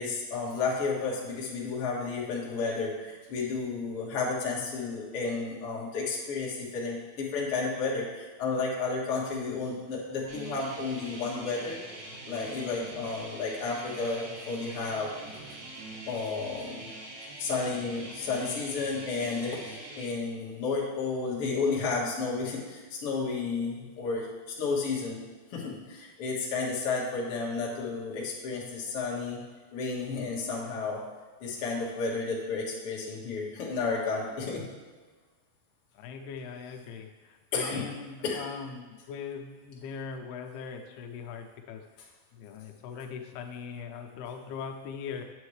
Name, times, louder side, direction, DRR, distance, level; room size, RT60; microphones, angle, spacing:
voice 1, 0.0-11.8 12.3-15.2 16.1-16.8 17.4-24.3 24.6-25.2 25.5-29.4 29.7-31.0 31.4-34.7 37.5-37.9 38.2-38.4, left 4 dB, 50° left, -4 dB, 1.9 m, -32 dB
sound 1, 10.3-20.1, right 2 dB, 85° right, 3.4 m, -44 dB
voice 2, 36.0-41.8 42.3-45.2, left 6 dB, 90° left, 3 dB, 2.7 m, -40 dB
9.7 x 7.1 x 3.2 m, 1.4 s
omnidirectional pair, 4.4 m